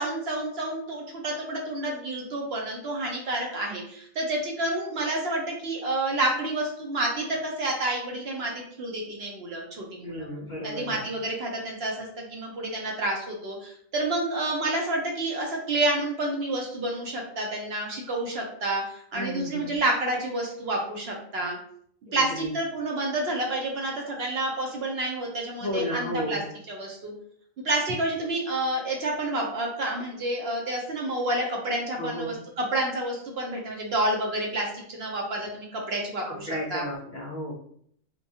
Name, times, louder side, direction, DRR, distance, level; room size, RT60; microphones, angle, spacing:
voice 1, 0.0-10.3 10.6-18.8 19.1-21.6 22.1-26.4 26.7-27.1 27.6-36.8, right 1 dB, 60° right, 0 dB, 0.7 m, -29 dB
voice 2, 10.0-11.1 19.1-19.8 22.1-22.5 25.6-26.5 32.0-32.4 36.3-37.5, equal, 75° left, -3 dB, 0.4 m, -33 dB
2.9 x 2.2 x 2.7 m, 0.65 s
omnidirectional pair, 1.4 m